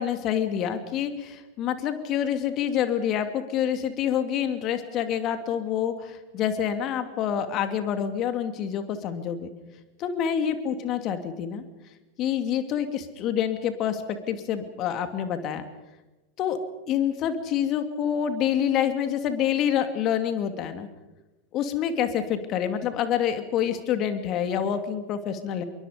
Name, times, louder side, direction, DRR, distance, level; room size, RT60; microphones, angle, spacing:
voice 1, 0.0-9.5 10.0-11.6 12.2-15.6 16.4-16.6 16.9-20.9 21.5-25.6, left 9 dB, 40° left, 8 dB, 2.6 m, -27 dB
26.0 x 23.0 x 5.2 m, 1.1 s
figure-of-eight pair, 90°, 0 cm